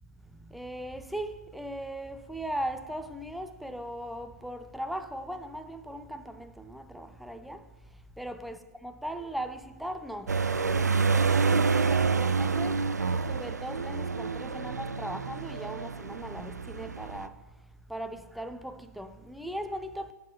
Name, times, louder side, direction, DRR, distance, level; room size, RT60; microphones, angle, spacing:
voice 1, 0.2-20.1, right 1 dB, ahead, 0.5 m, -39 dB
sound 1, 10.3-17.3, right 5 dB, 90° right, 0.5 m, -28 dB
17.5 x 6.7 x 2.8 m
figure-of-eight pair, 120°, 9 cm